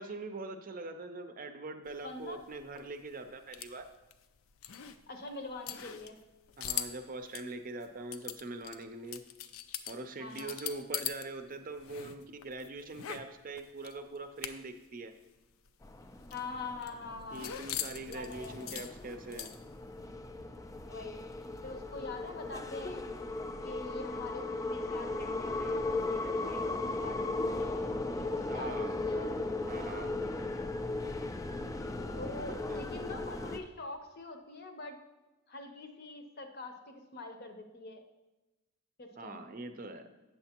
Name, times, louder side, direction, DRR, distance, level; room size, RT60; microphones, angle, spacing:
voice 1, 0.0-3.9 6.6-9.2 9.9-15.1 17.3-19.6 28.5-28.9 29.7-30.2 32.0-32.9 39.2-40.1, right 2 dB, 40° right, 8 dB, 0.5 m, -43 dB
sound 1, 1.9-11.3 11.5-14.9 15.1-15.2 15.5-19.8, left 10 dB, 80° left, 0.4 m, -42 dB
voice 2, 2.0-2.4 5.1-6.2 10.2-10.6 16.3-17.5 18.1-18.8 20.9-21.2 21.6-23.0 23.6-29.4 31.5-31.6 32.2-35.0 35.5-38.0 39.0-39.4, left 3 dB, 50° left, 5 dB, 0.7 m, -44 dB
sound 2, 15.8-33.6, left 2 dB, 15° left, 0.3 m, -37 dB
8.5 x 6.8 x 2.9 m, 1.1 s
head